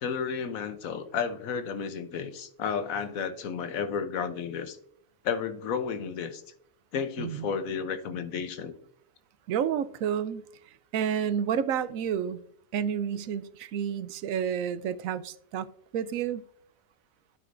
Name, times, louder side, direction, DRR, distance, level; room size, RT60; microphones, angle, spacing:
voice 1, 0.0-4.8 5.2-6.4 6.9-8.7, left 6 dB, 90° left, 1.3 m, -32 dB
voice 2, 9.5-10.4 10.9-12.4 12.7-15.7 15.9-16.4, right 8 dB, 85° right, 1.0 m, -30 dB
12.5 x 5.4 x 2.6 m
omnidirectional pair, 1.4 m